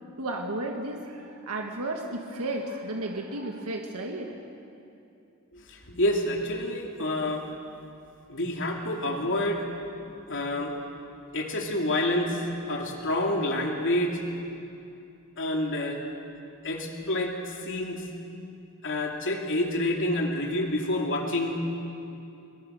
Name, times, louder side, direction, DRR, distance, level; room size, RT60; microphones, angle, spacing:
voice 1, 0.2-4.4, right 2 dB, 90° right, 2 dB, 1.7 m, -33 dB
voice 2, 5.5-7.5 8.3-9.7 10.3-10.7 11.3-14.2 15.4-16.0 16.6-18.0 18.8-21.6, left 1 dB, 60° left, 1 dB, 2.9 m, -28 dB
22.0 x 22.0 x 6.5 m, 2.6 s
head